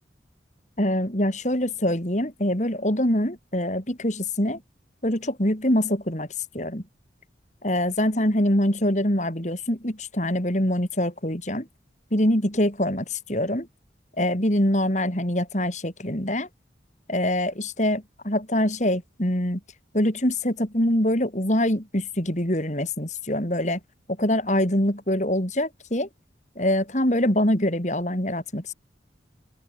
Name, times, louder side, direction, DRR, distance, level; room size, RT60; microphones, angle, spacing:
voice 1, 0.8-4.6 5.0-6.3 6.5-6.8 7.6-11.7 12.1-13.7 14.2-16.5 17.1-19.6 19.9-23.8 24.2-26.1 26.6-28.7, left 1 dB, 40° left, 4.4 m, -24 dB
head